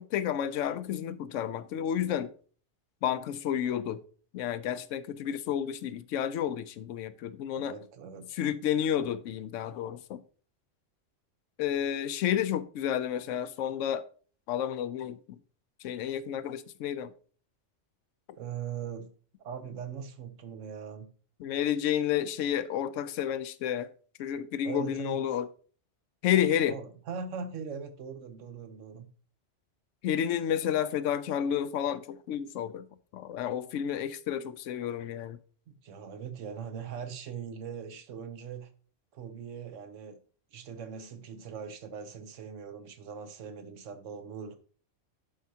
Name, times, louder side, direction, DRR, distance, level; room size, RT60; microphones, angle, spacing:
voice 1, 0.0-2.3 3.0-4.0 4.3-7.7 8.3-10.2 11.6-14.0 14.5-15.4 15.8-17.1 21.4-23.9 24.2-25.5 26.2-26.8 30.0-32.8 33.1-35.4, left 10 dB, 80° left, 0.9 m, -30 dB
voice 2, 7.5-8.4 18.4-19.1 19.4-21.1 24.6-25.2 26.3-29.1 35.7-38.7 39.1-40.2 40.5-44.6, right 6 dB, 75° right, 1.1 m, -41 dB
11.0 x 4.6 x 2.7 m
omnidirectional pair, 1.3 m